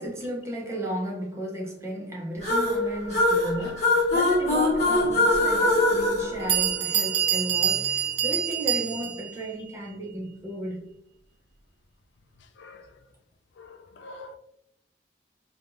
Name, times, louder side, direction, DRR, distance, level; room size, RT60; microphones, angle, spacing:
voice 1, 0.0-10.9, right 1 dB, 15° right, 0.5 m, -34 dB
sound 1, 2.4-7.2, left 2 dB, 40° left, 0.9 m, -23 dB
Bell, 5.3-5.4 6.1-6.2 6.5-9.3, right 9 dB, 80° right, 0.5 m, -26 dB
voice 2, 12.6-12.9 13.6-14.4, left 2 dB, 85° left, 0.4 m, -45 dB
3.3 x 2.2 x 2.5 m
head